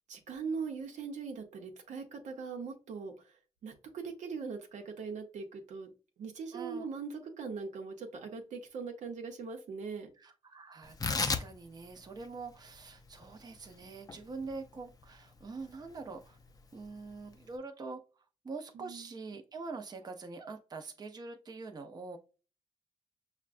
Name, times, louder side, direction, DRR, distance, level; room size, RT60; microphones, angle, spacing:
voice 1, 0.1-5.9 6.2-10.1 18.7-19.1, right 5 dB, 90° right, 4 dB, 0.8 m, -41 dB
voice 2, 6.5-6.9 10.2-16.4 16.7-22.2, right 4 dB, 35° right, 5 dB, 0.6 m, -44 dB
Tearing, 10.8-17.6, left 4 dB, 30° left, 0.4 m, -39 dB
5.8 x 2.2 x 2.5 m, 0.34 s
cardioid pair, 100°, 12 cm